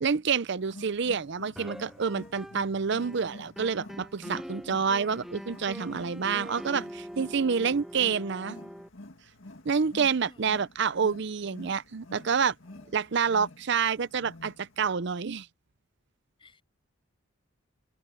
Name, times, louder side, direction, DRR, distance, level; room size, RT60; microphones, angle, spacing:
voice 1, 0.0-8.6 9.7-12.5 12.9-15.5, right 6 dB, 60° right, 0.6 m, -28 dB
Wild animals, 0.6-14.9, left 2 dB, 70° left, 2.0 m, -49 dB
sound 1, 1.6-2.7 3.0-8.9, equal, ahead, 0.7 m, -43 dB
voice 2, 10.3-10.6 12.6-13.2 16.4-16.6, left 1 dB, 25° left, 5.8 m, -57 dB
head